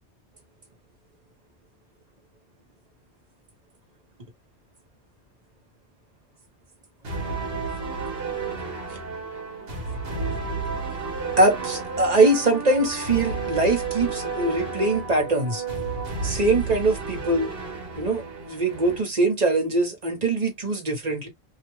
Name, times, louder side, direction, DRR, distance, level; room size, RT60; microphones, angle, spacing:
sound 1, 7.0-19.0, right 4 dB, 60° right, 1.2 m, -31 dB
voice 1, 11.4-15.6 16.2-17.5 18.0-21.3, right 2 dB, 35° right, 1.3 m, -22 dB
2.8 x 2.4 x 3.1 m
omnidirectional pair, 1.2 m